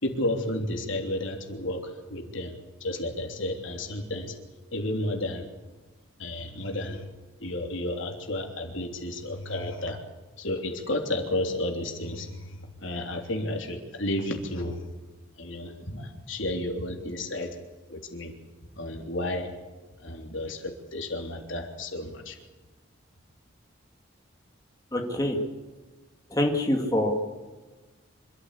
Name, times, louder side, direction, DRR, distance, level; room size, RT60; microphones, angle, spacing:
voice 1, 0.0-4.4 4.7-5.5 6.2-7.1 7.4-10.0 10.4-14.8 15.4-17.6 17.9-18.3 18.8-19.5 20.0-22.4, left 1 dB, 70° left, 3 dB, 3.3 m, -32 dB
voice 2, 24.9-25.4 26.3-27.1, left 1 dB, 15° left, 1 dB, 2.4 m, -25 dB
26.0 x 14.0 x 8.4 m, 1.2 s
head